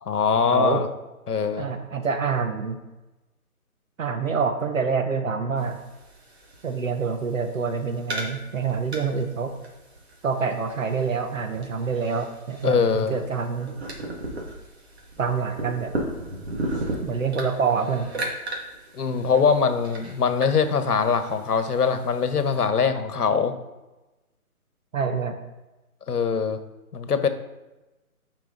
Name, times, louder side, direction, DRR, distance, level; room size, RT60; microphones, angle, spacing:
voice 1, 0.0-0.9 1.3-1.7 12.6-13.2 18.9-23.5 26.1-26.6 26.9-27.3, left 6 dB, 85° left, 10 dB, 1.1 m, -22 dB
voice 2, 0.5-0.8 1.6-2.8 4.0-5.8 6.6-9.5 10.2-13.7 15.2-15.9 17.0-18.1 24.9-25.4, right 5 dB, 60° right, 6 dB, 1.0 m, -26 dB
sound 1, 5.6-22.7, right 1 dB, 45° right, 1.9 m, -37 dB
9.2 x 4.9 x 3.8 m, 1.1 s
hypercardioid pair, 170°, 44 cm